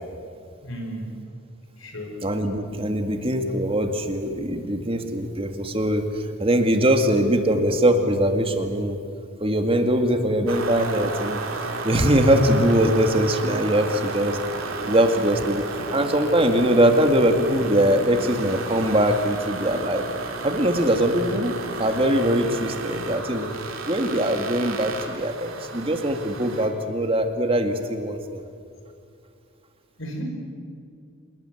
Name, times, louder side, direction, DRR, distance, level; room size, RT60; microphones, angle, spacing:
voice 1, 0.6-1.1 1.8-2.2 30.0-30.2, equal, 65° left, 3 dB, 5.4 m, -34 dB
voice 2, 2.2-9.0 9.4-11.4 11.8-14.4 14.9-20.1 20.4-23.5 23.9-28.4, right 1 dB, 25° right, 5 dB, 2.1 m, -22 dB
sound 1, 10.5-26.7, right 3 dB, 75° right, 3.4 m, -33 dB
26.5 x 21.0 x 7.9 m, 2.5 s
head